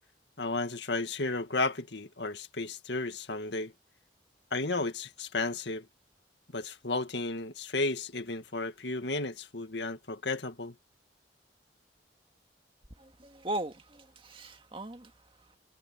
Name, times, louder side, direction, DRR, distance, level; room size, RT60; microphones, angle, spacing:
voice 1, 0.4-3.7 4.5-5.9 6.5-10.7, left 3 dB, 80° left, 2.0 m, -33 dB
voice 2, 13.0-15.1, right 1 dB, 30° right, 2.1 m, -38 dB
head